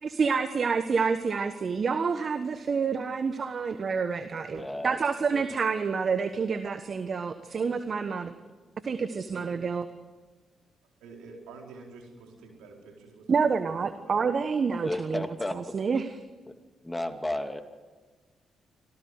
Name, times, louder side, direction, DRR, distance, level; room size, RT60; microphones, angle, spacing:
voice 1, 0.0-8.3 8.8-9.8 13.3-15.2 15.5-16.1, right 5 dB, 50° right, 10 dB, 1.3 m, -28 dB
voice 2, 4.6-5.0 5.3-5.4 7.7-7.8 14.8-16.0 16.8-17.6, left 1 dB, 15° left, 7 dB, 2.5 m, -33 dB
voice 3, 11.0-14.5, right 4 dB, 75° right, 1 dB, 4.7 m, -49 dB
26.0 x 17.5 x 8.1 m, 1.4 s
hypercardioid pair, 40°, 0 cm